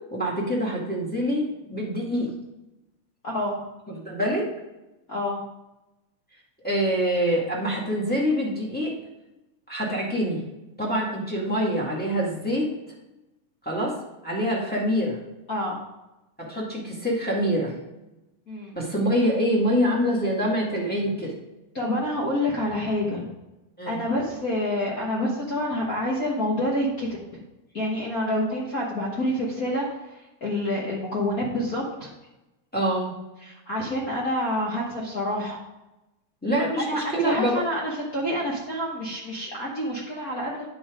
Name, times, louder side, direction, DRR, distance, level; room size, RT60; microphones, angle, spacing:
voice 1, 0.1-2.4 3.9-4.5 6.6-9.0 9.7-10.4 10.8-12.7 13.6-14.0 14.2-15.2 16.4-17.7 18.7-21.3 23.8-24.0 32.7-33.2 36.4-37.6, equal, 5° left, -4 dB, 1.4 m, -25 dB
voice 2, 3.2-3.6 5.1-5.4 15.5-15.8 18.5-18.8 21.7-23.3 23.9-27.2 27.7-32.1 33.4-35.6 36.9-40.7, left 1 dB, 55° left, -4 dB, 1.0 m, -28 dB
9.2 x 4.8 x 5.1 m, 0.98 s
omnidirectional pair, 3.3 m